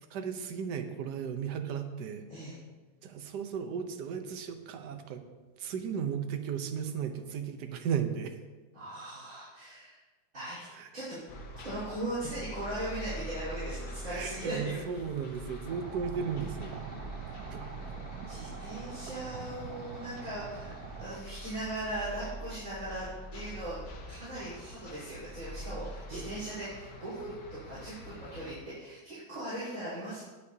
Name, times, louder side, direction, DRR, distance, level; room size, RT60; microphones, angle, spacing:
voice 1, 0.1-2.2 3.0-5.2 5.6-8.4 10.7-10.9 14.1-17.0 17.5-17.7 25.5-25.6 26.1-26.4, right 7 dB, 60° right, 6 dB, 1.4 m, -35 dB
voice 2, 8.7-10.0 10.3-10.6 10.9-11.2 11.6-14.8 17.1-17.3 18.2-20.7 21.0-23.1 23.3-23.8 24.0-30.2, right 1 dB, 40° right, -12 dB, 4.5 m, -39 dB
sound 1, 11.3-28.6, equal, 60° left, 1.7 m, -44 dB
sound 2, 15.7-21.2, right 8 dB, 85° right, 0.8 m, -45 dB
18.5 x 6.7 x 2.8 m, 1.2 s
omnidirectional pair, 2.2 m